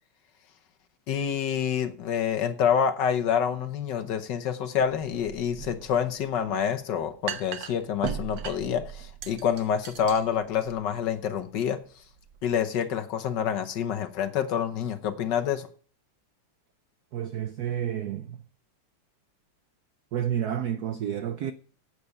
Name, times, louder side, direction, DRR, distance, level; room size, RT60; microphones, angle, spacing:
voice 1, 1.1-11.8 12.4-15.7, left 8 dB, 60° left, 1.4 m, -27 dB
sound 1, 4.8-12.6, right 8 dB, 65° right, 1.5 m, -40 dB
voice 2, 17.1-18.4 20.1-21.5, right 10 dB, 90° right, 0.8 m, -30 dB
11.5 x 8.4 x 5.4 m
omnidirectional pair, 2.4 m